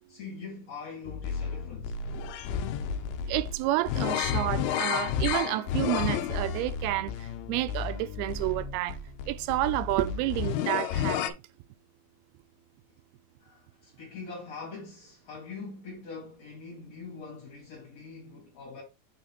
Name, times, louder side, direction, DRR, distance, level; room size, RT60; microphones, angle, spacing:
voice 1, 0.1-1.9 13.4-18.8, left 4 dB, 50° left, 2.7 m, -43 dB
sound 1, 1.1-11.3, left 8 dB, 90° left, 2.6 m, -32 dB
voice 2, 3.3-9.0 9.3-11.4, right 16 dB, 85° right, 2.5 m, -30 dB
7.0 x 3.8 x 4.2 m
omnidirectional pair, 4.5 m